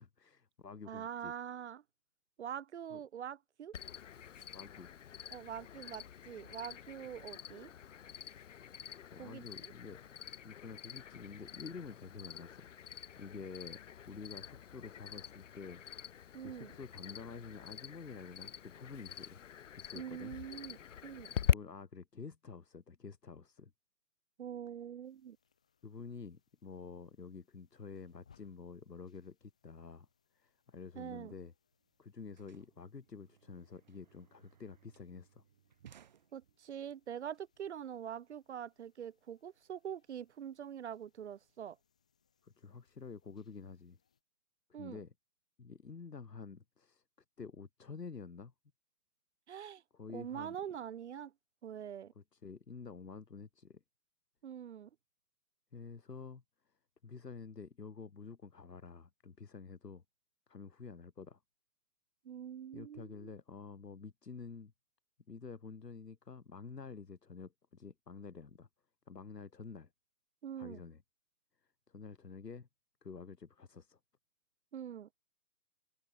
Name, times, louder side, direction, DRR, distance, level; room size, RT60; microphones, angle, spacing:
voice 1, 0.0-1.3 2.9-3.0 4.5-4.9 9.1-10.0 10.4-12.7 13.2-13.8 14.1-15.8 16.4-19.4 19.7-20.4 21.5-23.7 25.8-30.1 30.3-31.5 32.0-35.4 42.4-44.0 44.8-45.1 45.6-47.0 47.4-48.5 49.9-50.6 52.2-53.8 55.7-56.4 57.0-60.0 60.5-61.4 62.7-64.7 65.3-68.7 69.1-69.9 70.6-71.0 71.9-72.7 73.0-74.0, left 5 dB, 80° left, 2.9 m, -49 dB
voice 2, 0.9-1.8 2.4-3.8 5.3-7.7 9.2-9.7 16.3-16.7 19.9-21.3 24.4-25.4 31.0-31.3 36.3-41.8 44.7-45.0 49.5-49.8 50.1-51.3 51.6-52.1 54.4-54.9 62.2-63.3 70.4-70.8 74.7-75.1, right 9 dB, 45° right, 1.1 m, -44 dB
Cricket, 3.7-21.5, left 9 dB, 50° left, 0.6 m, -43 dB
sound 1, 25.0-44.2, left 7 dB, 5° left, 0.6 m, -75 dB
sound 2, 31.4-31.5 31.7-36.9, right 9 dB, 30° right, 0.8 m, -63 dB
open air
figure-of-eight pair, 140°, 49 cm